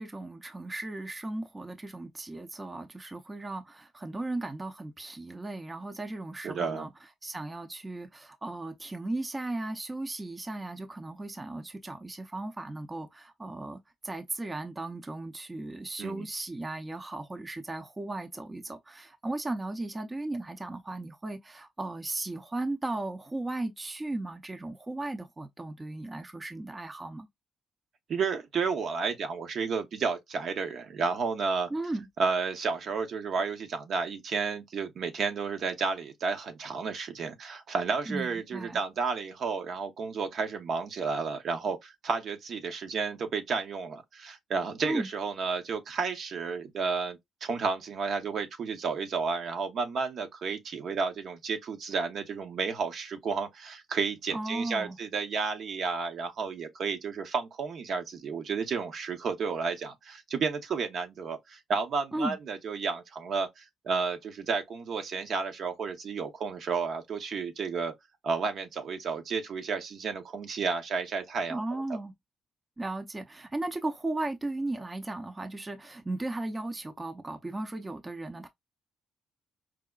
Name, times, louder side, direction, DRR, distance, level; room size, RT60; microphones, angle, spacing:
voice 1, 0.0-6.9 7.2-27.3 31.7-32.1 38.1-38.8 44.8-45.1 54.3-55.0 62.1-62.4 71.5-72.1 72.8-78.5, right 2 dB, 20° right, 0.5 m, -36 dB
voice 2, 6.4-6.9 16.0-16.3 28.1-31.7 32.2-67.9 68.2-72.0, right 5 dB, 60° right, 0.7 m, -32 dB
4.6 x 2.1 x 2.3 m
cardioid pair, 90°, 0 cm